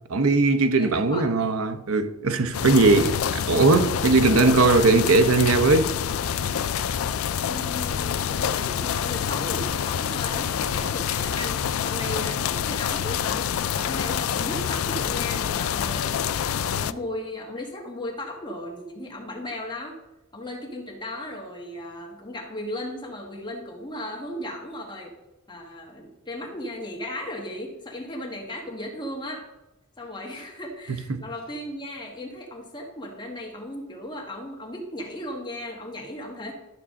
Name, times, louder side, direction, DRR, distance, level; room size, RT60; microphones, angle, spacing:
voice 1, 0.1-5.9 30.9-31.2, right 3 dB, 85° right, 0.8 m, -19 dB
voice 2, 0.7-1.5 7.4-20.0 20.3-25.1 25.5-29.4 30.0-36.5, left 1 dB, 20° left, 1.5 m, -36 dB
sound 1, 2.5-16.9, left 8 dB, 75° left, 0.4 m, -27 dB
12.0 x 6.9 x 3.7 m
head